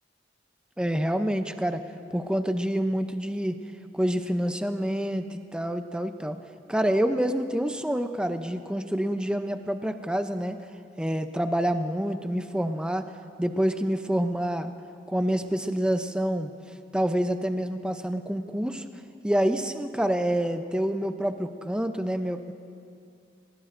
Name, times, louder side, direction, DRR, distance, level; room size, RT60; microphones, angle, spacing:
voice 1, 0.8-1.8 2.1-3.6 3.9-6.4 6.7-10.6 11.0-13.1 13.4-14.7 15.1-16.5 16.9-18.9 19.2-22.5, equal, 5° right, 8 dB, 0.5 m, -27 dB
20.0 x 19.5 x 2.6 m, 2.4 s
head